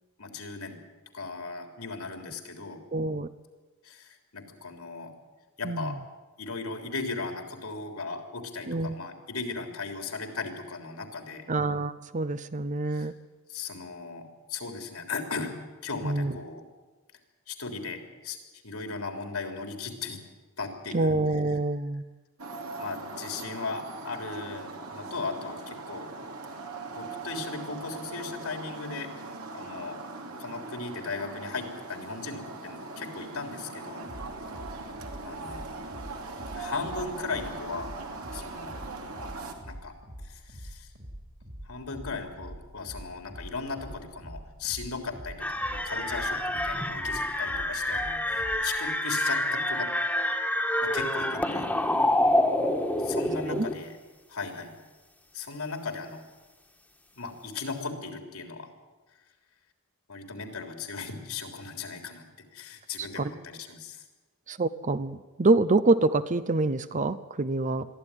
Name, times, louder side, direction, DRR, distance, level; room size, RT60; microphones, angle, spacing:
voice 1, 0.2-0.8 1.1-2.8 3.8-5.1 5.6-6.0 6.4-11.4 12.9-13.1 13.5-16.6 17.5-18.4 18.6-20.2 20.6-21.6 22.8-26.1 26.9-29.1 29.5-30.0 30.4-34.1 35.2-35.6 36.5-38.0 38.3-38.7 39.6-39.9 40.2-40.9 41.6-49.9 50.8-51.7 53.0-54.0 54.3-54.7 55.3-56.2 57.1-58.7 60.1-62.3 62.5-64.0, left 4 dB, 80° left, 4 dB, 3.5 m, -37 dB
voice 2, 2.9-3.3 5.6-5.9 8.7-8.9 11.5-13.1 16.0-16.3 20.9-22.0 53.5-53.7 63.2-63.3 64.5-67.9, right 2 dB, 35° right, 13 dB, 0.6 m, -26 dB
sound 1, 22.4-39.5, right 3 dB, 75° right, 2.8 m, -40 dB
sound 2, 34.0-48.8, equal, 55° right, 4.2 m, -45 dB
sound 3, 45.4-53.7, left 1 dB, 5° left, 1.7 m, -27 dB
22.5 x 14.0 x 9.9 m, 1.3 s
head